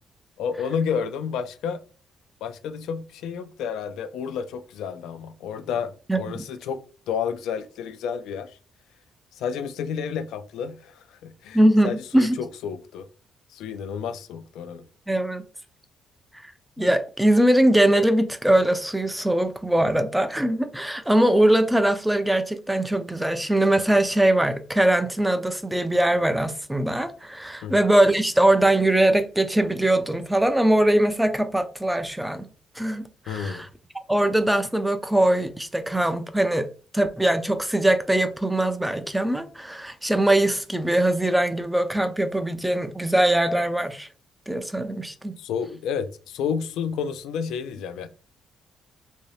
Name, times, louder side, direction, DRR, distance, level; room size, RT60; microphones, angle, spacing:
voice 1, 0.4-1.8 2.4-6.8 7.1-8.6 9.3-13.1 13.5-14.9 27.6-27.8 33.3-33.7 45.4-48.1, left 7 dB, 85° left, 0.3 m, -31 dB
voice 2, 6.1-6.4 11.5-12.4 15.1-15.5 16.8-32.5 32.8-33.7 34.1-36.7 36.9-44.1 44.5-45.4, right 1 dB, 5° right, 0.3 m, -21 dB
2.7 x 2.7 x 3.1 m
cardioid pair, 90°, 0 cm